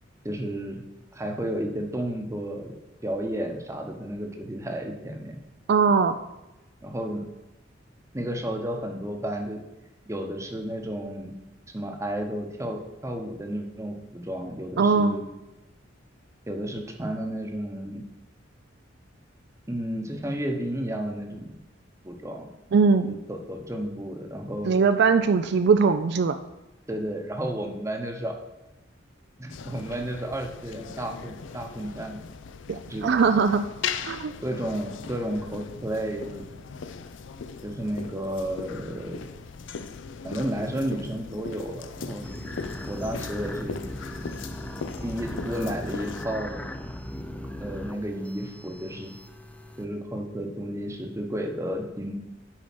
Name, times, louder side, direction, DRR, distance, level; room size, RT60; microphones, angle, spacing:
voice 1, 0.2-0.8 1.1-2.7 3.0-5.4 6.8-7.2 8.1-9.6 10.1-11.3 11.7-15.3 16.5-18.0 19.7-21.5 22.0-22.5 23.1-24.7 26.9-28.4 29.4-32.2 32.9-33.1 34.4-36.5 37.6-39.2 40.2-42.3 42.8-43.8 45.0-46.7 47.6-49.1 49.8-52.1, right 1 dB, 15° right, 4 dB, 0.9 m, -32 dB
voice 2, 5.7-6.2 14.8-15.2 22.7-23.2 24.6-26.4 32.7-33.7 34.1-34.3, right 5 dB, 60° right, 9 dB, 0.4 m, -21 dB
sound 1, 29.5-46.3, left 6 dB, 75° left, 0.4 m, -39 dB
sound 2, 42.2-49.8, left 1 dB, 5° left, 0.4 m, -38 dB
7.2 x 4.8 x 6.0 m, 0.96 s
head